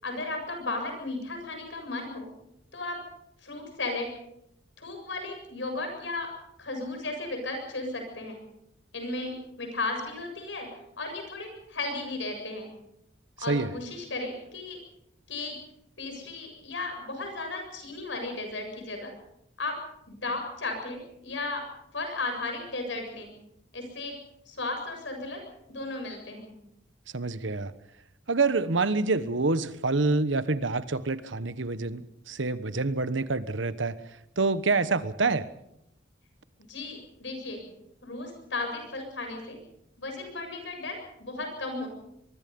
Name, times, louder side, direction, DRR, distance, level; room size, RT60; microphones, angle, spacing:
voice 1, 0.0-2.3 2.7-3.0 3.4-4.1 4.8-6.3 6.6-8.4 8.9-10.7 11.0-12.7 13.4-14.8 15.3-15.6 16.0-19.1 19.6-19.8 20.1-21.7 21.9-23.4 23.7-24.2 24.5-25.4 25.7-26.6 36.7-37.6 38.0-39.6 40.0-41.9, left 2 dB, 75° left, 4 dB, 7.4 m, -35 dB
voice 2, 27.1-27.7 28.3-34.0 34.4-35.5, right 3 dB, 85° right, 14 dB, 1.2 m, -27 dB
24.0 x 23.0 x 5.4 m, 0.77 s
head